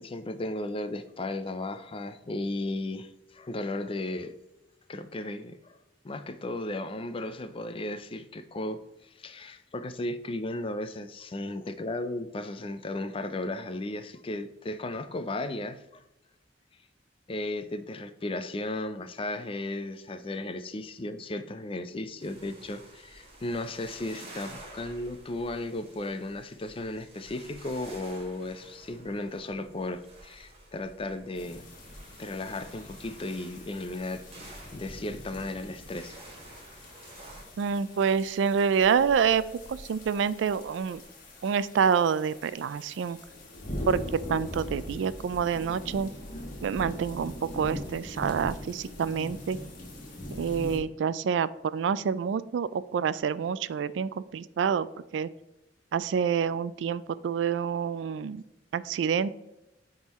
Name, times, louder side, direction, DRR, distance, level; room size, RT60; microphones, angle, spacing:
voice 1, 0.0-4.3 4.9-5.8 6.0-16.0 17.3-31.7 32.2-34.2 34.7-36.2, left 2 dB, 30° left, 11 dB, 0.5 m, -35 dB
sound 1, 22.2-37.4, right 1 dB, 30° right, 1.7 m, -50 dB
sound 2, 31.3-50.8, left 1 dB, 45° left, 1.7 m, -42 dB
voice 2, 37.6-39.4 39.7-41.0 41.4-43.2 43.9-46.1 46.6-49.6 50.3-54.9 55.1-55.3 55.9-58.4 58.7-59.3, right 7 dB, 75° right, 16 dB, 0.3 m, -27 dB
9.4 x 3.8 x 3.0 m, 0.96 s
head